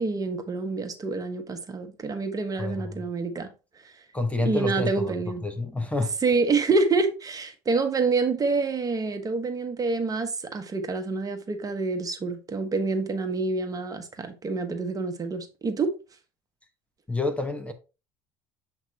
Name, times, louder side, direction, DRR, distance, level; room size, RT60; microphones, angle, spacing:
voice 1, 0.0-3.5 3.8-3.9 4.4-5.4 6.2-15.9, right 3 dB, 30° right, 1.2 m, -27 dB
voice 2, 2.6-3.0 4.1-5.1 5.4-6.1 17.1-17.7, left 2 dB, 10° left, 1.0 m, -28 dB
7.3 x 3.3 x 4.1 m
supercardioid pair, 85°, 12 cm